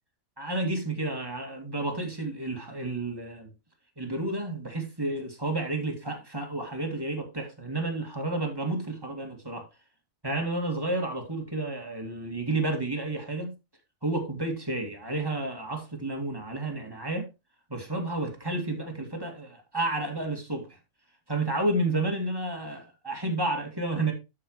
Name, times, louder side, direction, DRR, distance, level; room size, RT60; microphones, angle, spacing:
voice 1, 0.4-3.5 4.0-9.7 10.2-13.5 14.0-17.3 17.7-20.7 21.3-24.1, right 2 dB, 15° right, 2.4 m, -31 dB
12.0 x 5.8 x 3.2 m
omnidirectional pair, 1.5 m